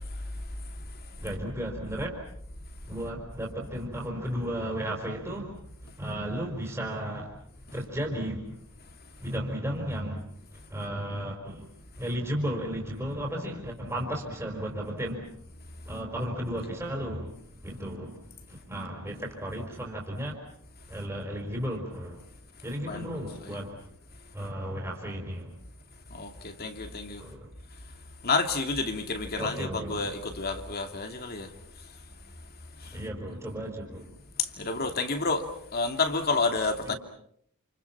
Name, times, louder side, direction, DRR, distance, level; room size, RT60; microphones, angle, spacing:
voice 1, 1.2-2.2 2.9-5.5 6.0-7.3 7.7-8.5 9.2-10.3 10.7-11.7 12.0-15.3 15.9-17.3 17.6-18.2 18.5-20.4 20.9-22.2 22.6-23.8 24.3-25.5 27.2-27.5 29.4-30.1 32.9-34.1 36.8-37.0, equal, 15° right, 4.7 m, -34 dB
voice 2, 22.8-23.5 26.1-27.2 28.2-31.5 32.8-33.0 34.4-36.9, left 3 dB, 45° left, 2.7 m, -30 dB
29.0 x 29.0 x 5.9 m
head